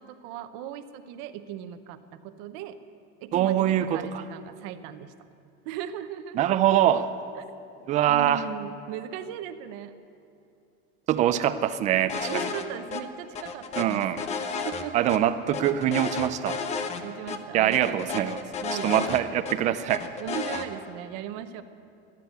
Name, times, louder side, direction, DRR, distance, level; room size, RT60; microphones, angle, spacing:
voice 1, 0.0-2.8 3.2-5.1 5.6-6.4 7.4-7.5 8.1-10.0 12.3-14.1 14.6-15.1 17.0-18.3 18.6-19.0 20.2-21.6, right 10 dB, 55° right, 10 dB, 0.9 m, -38 dB
voice 2, 3.3-4.2 6.3-7.1 7.9-8.4 11.1-12.5 13.8-14.2 14.9-16.6 17.5-18.4 18.8-20.0, right 11 dB, 25° right, 11 dB, 0.4 m, -24 dB
sound 1, 12.1-12.6 12.9-13.0 13.4-15.2 15.5-17.0 17.3-17.4 17.7-19.6 19.9-20.7, left 5 dB, 25° left, 0.6 m, -32 dB
14.5 x 9.9 x 9.5 m, 2.5 s
cardioid pair, 180°, 29 cm